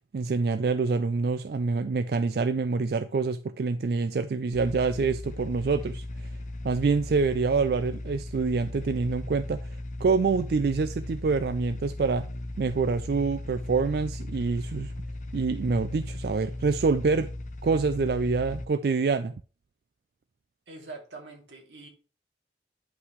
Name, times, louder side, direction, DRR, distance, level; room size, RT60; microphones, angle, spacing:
voice 1, 0.1-6.3 6.6-9.7 10.0-12.3 12.6-14.9 15.3-17.3 17.6-19.3, right 4 dB, 60° right, 0.4 m, -26 dB
sound 1, 4.5-18.6, left 1 dB, 45° left, 0.6 m, -37 dB
voice 2, 20.7-21.9, right 3 dB, 85° right, 2.6 m, -44 dB
9.8 x 5.7 x 3.1 m
head